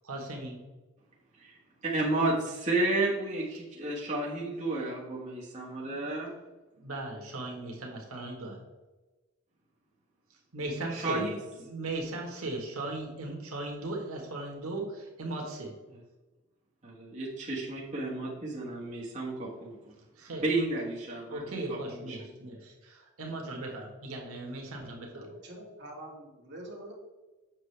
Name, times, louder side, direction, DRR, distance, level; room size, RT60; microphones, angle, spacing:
voice 1, 0.0-0.6 5.8-6.1 6.8-8.6 10.5-11.2 11.7-15.7 20.2-20.4 21.3-25.2, right 2 dB, 80° right, 0 dB, 1.4 m, -37 dB
voice 2, 1.8-6.3 10.9-11.4 16.8-20.0 20.4-22.2, right 2 dB, 35° right, -5 dB, 1.3 m, -32 dB
voice 3, 25.1-26.9, right 1 dB, 50° right, -2 dB, 2.0 m, -45 dB
7.5 x 5.9 x 3.3 m, 1.2 s
head